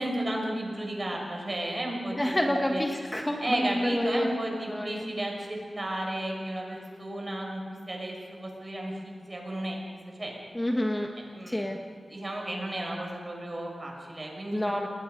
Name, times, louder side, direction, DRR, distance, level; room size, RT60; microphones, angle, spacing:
voice 1, 0.0-2.8 3.4-7.6 7.9-8.9 9.3-9.8 10.2-10.3 11.2-11.7 12.1-14.6, right 1 dB, 30° right, 0 dB, 6.4 m, -33 dB
voice 2, 2.1-4.4 4.7-5.1 10.5-11.1 11.5-11.8 14.5-14.9, left 1 dB, 15° left, 2 dB, 1.6 m, -28 dB
29.0 x 21.0 x 5.4 m, 2.1 s
wide cardioid pair, 95°, 0 cm